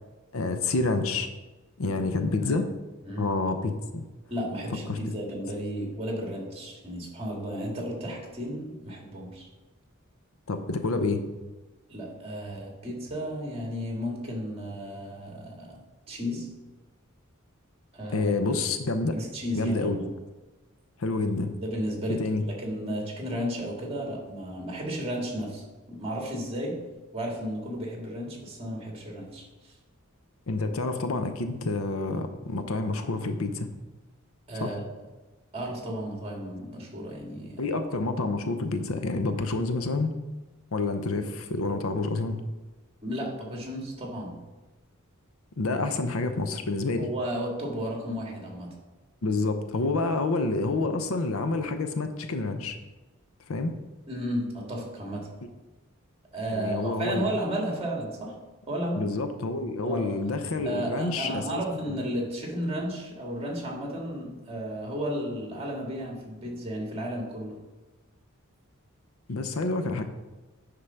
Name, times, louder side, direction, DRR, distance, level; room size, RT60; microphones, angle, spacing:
voice 1, 0.3-1.3 1.8-2.7 3.2-4.0 4.9-5.0 10.5-11.2 18.1-19.2 19.5-20.0 21.0-21.6 22.1-22.4 22.8-22.9 30.5-33.7 34.6-34.7 37.6-40.1 40.7-42.4 45.6-47.0 49.2-52.8 53.5-53.7 56.5-57.3 59.0-62.0 69.3-70.0, left 3 dB, 75° left, 8 dB, 0.7 m, -28 dB
voice 2, 4.3-9.5 11.9-15.8 16.1-16.5 17.9-18.3 19.1-20.1 21.6-25.6 25.9-26.8 27.1-29.7 34.5-34.8 35.5-37.6 43.0-44.4 47.0-48.7 54.1-55.3 56.3-58.3 58.7-59.1 59.8-60.1 60.6-67.6, equal, 30° right, -1 dB, 1.9 m, -33 dB
9.8 x 3.8 x 5.7 m, 1.1 s
head